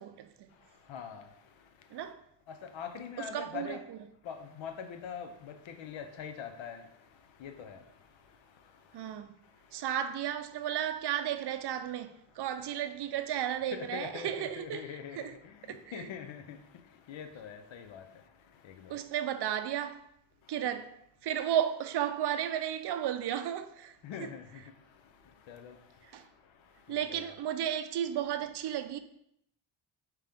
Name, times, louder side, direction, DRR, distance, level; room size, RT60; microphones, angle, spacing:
voice 1, 0.0-0.5 1.9-2.2 3.2-4.0 8.9-9.4 9.7-15.3 15.7-16.1 18.9-20.1 20.5-20.9 21.2-23.9 24.2-24.3 26.1-26.2 26.9-29.0, right 10 dB, 60° right, 0.5 m, -34 dB
voice 2, 0.6-2.0 2.5-3.8 4.2-9.1 9.4-9.8 13.7-19.1 20.4-20.7 24.0-27.3, left 7 dB, 70° left, 0.7 m, -45 dB
4.9 x 3.0 x 3.4 m
cardioid pair, 70°, 47 cm